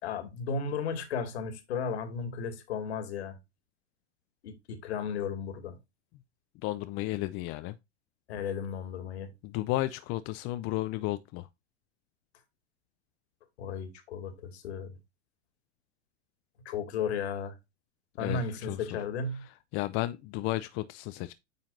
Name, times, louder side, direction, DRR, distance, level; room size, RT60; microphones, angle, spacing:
voice 1, 0.0-3.4 4.4-5.8 8.3-9.3 13.6-15.0 16.6-17.5 18.2-19.5, left 5 dB, 65° left, 2.4 m, -34 dB
voice 2, 6.6-7.7 9.4-11.5 18.2-18.8 19.7-21.3, left 17 dB, 35° left, 0.5 m, -33 dB
9.1 x 5.7 x 2.6 m
hypercardioid pair, 105°, 35 cm